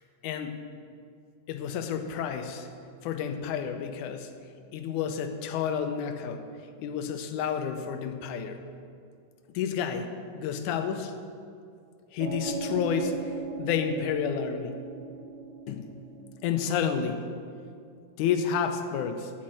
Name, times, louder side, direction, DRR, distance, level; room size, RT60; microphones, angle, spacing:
voice 1, 0.2-0.6 1.5-2.7 3.0-4.3 4.7-6.4 6.8-8.6 9.5-11.1 12.1-13.1 13.6-14.7 15.7-16.0 16.4-17.2 18.2-19.3, left 7 dB, 80° left, 7 dB, 2.1 m, -30 dB
sound 1, 12.2-17.4, right 4 dB, 75° right, 1.7 m, -38 dB
8.6 x 6.3 x 7.5 m, 2.3 s
omnidirectional pair, 3.5 m